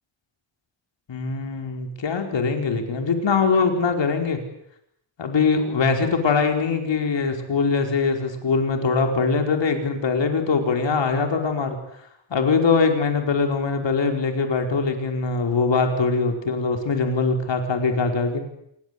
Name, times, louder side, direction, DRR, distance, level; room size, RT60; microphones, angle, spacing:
voice 1, 1.1-4.4 5.2-11.8 12.3-18.4, left 4 dB, 60° left, 5 dB, 5.0 m, -22 dB
28.0 x 23.0 x 8.4 m, 0.74 s
wide cardioid pair, 150°, 49 cm